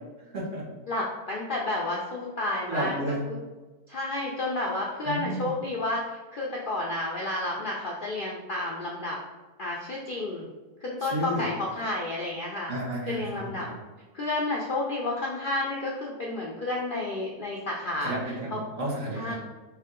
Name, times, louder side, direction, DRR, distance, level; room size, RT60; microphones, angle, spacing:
voice 1, 0.3-0.6 2.7-3.2 5.0-5.5 11.0-11.4 12.7-13.7 18.0-19.4, right 1 dB, 55° right, -4 dB, 1.4 m, -32 dB
voice 2, 0.9-3.0 3.3-3.4 3.9-9.2 9.6-10.5 10.8-12.7 13.0-13.7 14.1-18.1 18.5-18.6 19.1-19.3, left 2 dB, 90° left, -3 dB, 0.4 m, -31 dB
4.6 x 2.7 x 3.7 m, 1.2 s
omnidirectional pair, 1.7 m